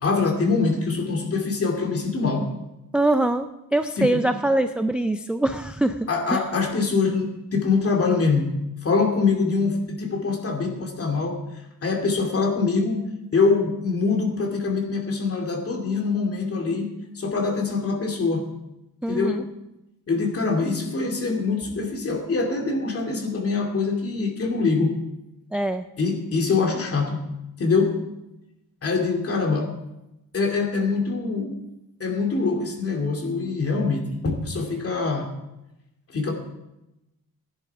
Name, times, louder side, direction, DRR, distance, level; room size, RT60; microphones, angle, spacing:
voice 1, 0.0-2.5 4.0-4.2 6.1-8.5 8.8-11.4 11.8-13.0 13.3-16.9 17.1-18.4 19.1-19.4 20.1-24.9 26.0-27.2 27.6-27.9 28.8-29.7 30.3-31.5 32.0-35.3 36.1-36.3, left 4 dB, 40° left, 2 dB, 2.6 m, -24 dB
voice 2, 2.9-6.4 19.0-19.4 25.5-25.9, right 1 dB, 5° right, 8 dB, 0.3 m, -23 dB
16.0 x 10.5 x 4.7 m, 0.92 s
wide cardioid pair, 160°, 36 cm